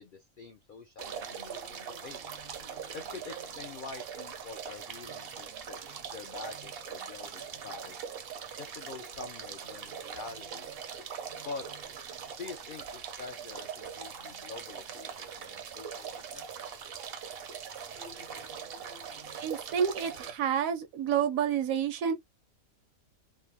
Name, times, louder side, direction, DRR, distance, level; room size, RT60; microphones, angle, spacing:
voice 1, 0.0-2.2 2.9-8.0 8.6-10.7 11.4-11.7 12.4-16.5, left 4 dB, 85° left, 0.4 m, -46 dB
sound 1, 1.0-20.3, right 7 dB, 60° right, 0.6 m, -42 dB
voice 2, 19.4-22.1, right 8 dB, 75° right, 1.0 m, -29 dB
3.2 x 2.0 x 2.9 m
omnidirectional pair, 1.5 m